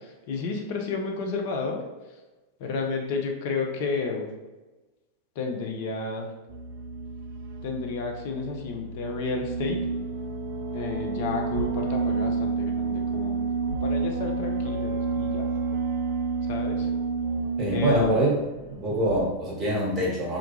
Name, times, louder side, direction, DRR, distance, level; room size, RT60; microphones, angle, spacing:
voice 1, 0.3-1.8 2.6-4.3 5.4-6.3 7.6-9.8 10.7-13.4 13.8-15.5 16.5-16.9 17.7-18.2, left 4 dB, 50° left, 2 dB, 0.4 m, -31 dB
sound 1, 6.5-19.3, right 4 dB, 50° right, 0.3 m, -30 dB
voice 2, 17.6-18.4 18.8-20.4, right 1 dB, 25° right, -5 dB, 1.1 m, -24 dB
2.4 x 2.2 x 3.0 m, 1.2 s
figure-of-eight pair, 90°, 0 cm